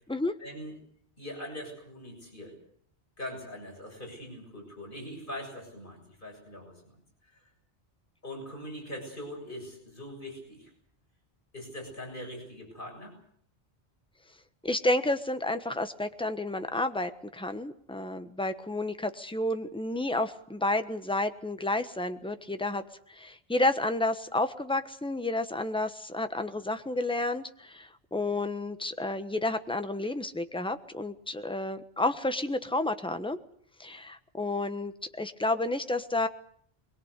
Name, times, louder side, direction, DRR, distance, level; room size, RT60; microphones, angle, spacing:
voice 1, 0.4-0.8 1.2-2.6 3.2-6.7 8.2-10.7 11.5-13.2, equal, 50° left, 1 dB, 7.4 m, -42 dB
voice 2, 14.6-33.4 33.8-36.3, left 2 dB, 5° left, 8 dB, 1.2 m, -31 dB
22.5 x 21.5 x 8.2 m, 0.62 s
omnidirectional pair, 1.1 m